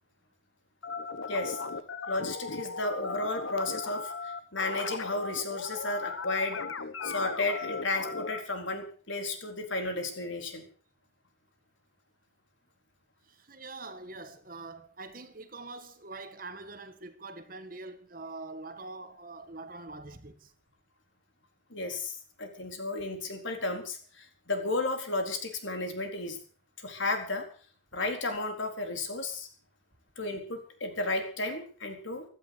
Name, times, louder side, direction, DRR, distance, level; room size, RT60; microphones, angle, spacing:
sound 1, 0.8-8.4, left 4 dB, 90° left, 1.3 m, -37 dB
voice 1, 1.3-1.6 2.1-6.6 7.0-10.6 21.7-26.4 26.8-27.4 27.9-29.5 30.2-32.3, left 2 dB, 75° left, 4.2 m, -33 dB
voice 2, 13.3-20.5, right 3 dB, 45° right, 1.8 m, -44 dB
16.0 x 12.5 x 6.8 m
head